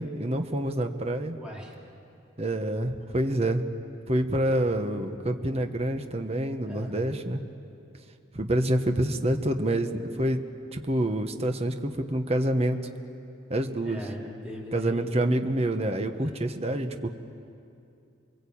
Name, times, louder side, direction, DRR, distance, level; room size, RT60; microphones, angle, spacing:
voice 1, 0.0-1.4 2.4-3.7 4.1-7.4 8.3-10.4 10.7-12.8 13.5-14.0 14.7-17.1, right 1 dB, 30° right, 6 dB, 1.2 m, -27 dB
voice 2, 1.3-1.8 6.7-7.2 13.8-15.1 16.2-16.4, equal, 5° right, -4 dB, 4.1 m, -40 dB
28.5 x 22.0 x 8.6 m, 2.6 s
head